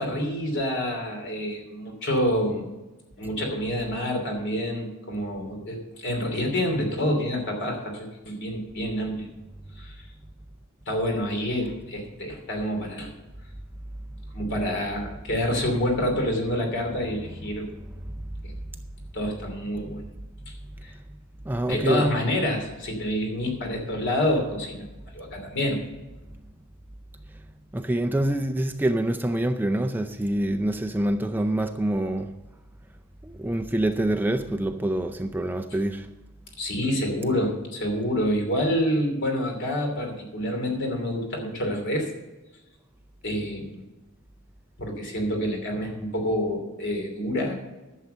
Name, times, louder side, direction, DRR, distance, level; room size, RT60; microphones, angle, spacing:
voice 1, 0.0-2.7 3.2-9.3 9.8-10.1 10.9-13.1 14.3-17.7 18.4-18.5 19.1-20.0 20.5-20.6 20.8-20.9 21.7-24.8 25.1-25.8 36.6-42.1 43.2-43.8 44.8-47.6, equal, 60° left, 2.9 m, -27 dB
voice 2, 17.0-17.7 21.4-22.3 27.7-32.4 33.2-36.1, right 1 dB, 10° right, 0.5 m, -26 dB
11.5 x 7.3 x 6.7 m
head